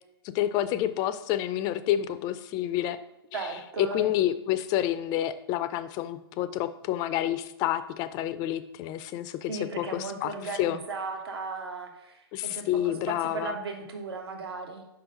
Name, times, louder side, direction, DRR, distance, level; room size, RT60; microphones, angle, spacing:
voice 1, 0.2-3.0 3.3-3.5 3.8-9.5 9.8-10.3 10.6-10.8 12.3-13.6, left 12 dB, 30° left, 12 dB, 0.4 m, -29 dB
voice 2, 3.3-4.1 9.5-12.9 13.2-14.8, right 3 dB, 70° right, 3 dB, 1.3 m, -36 dB
5.5 x 3.9 x 5.1 m, 0.88 s
figure-of-eight pair, 115°, 14 cm